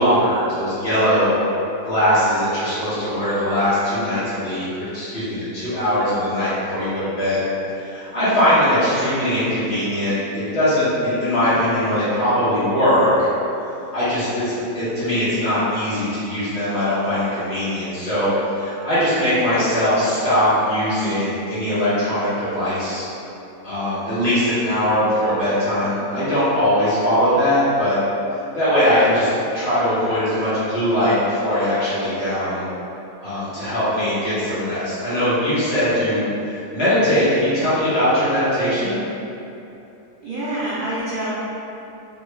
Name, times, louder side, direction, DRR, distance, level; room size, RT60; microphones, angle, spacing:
voice 1, 0.0-1.4 1.8-7.4 7.7-13.3 13.9-23.1 23.6-28.0 28.5-29.3 29.5-32.6 33.2-39.0, equal, 50° left, -13 dB, 1.4 m, -20 dB
voice 2, 40.2-41.3, right 1 dB, 70° right, -9 dB, 0.5 m, -26 dB
3.2 x 2.2 x 3.1 m, 2.8 s
omnidirectional pair, 1.5 m